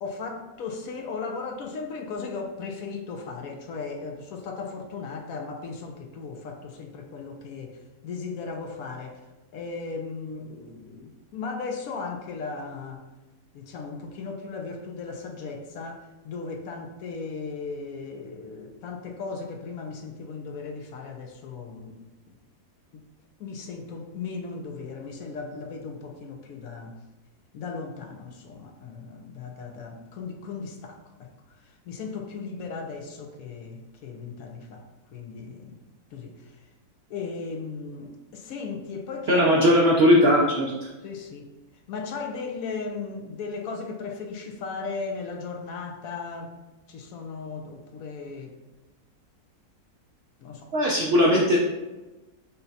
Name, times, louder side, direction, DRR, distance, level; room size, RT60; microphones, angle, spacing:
voice 1, 0.0-9.2 9.5-13.0 13.5-22.0 22.3-22.4 22.9-23.0 23.4-27.0 27.5-31.3 31.6-34.8 35.1-35.8 36.1-36.6 37.1-39.6 41.0-41.5 41.9-46.5 46.9-48.6 50.4-50.7, left 4 dB, 70° left, 3 dB, 1.0 m, -36 dB
voice 2, 39.3-40.7 50.7-51.6, equal, 65° right, -2 dB, 0.6 m, -19 dB
5.6 x 2.2 x 4.0 m, 1.1 s
omnidirectional pair, 1.7 m